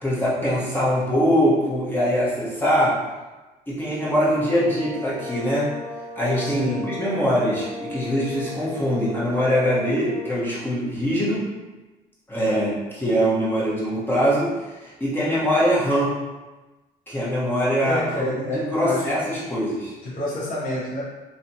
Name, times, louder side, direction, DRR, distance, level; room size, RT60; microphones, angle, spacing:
voice 1, 0.0-2.9 3.7-5.7 6.1-11.4 12.3-16.1 17.1-18.4 18.7-19.9, equal, 10° left, -8 dB, 1.1 m, -22 dB
sound 1, 3.9-10.5, left 1 dB, 70° right, 0.7 m, -37 dB
voice 2, 6.4-6.9 17.8-19.1 20.0-21.0, left 1 dB, 55° left, -6 dB, 1.0 m, -28 dB
3.1 x 2.9 x 2.7 m, 1.2 s
cardioid pair, 110°, 17 cm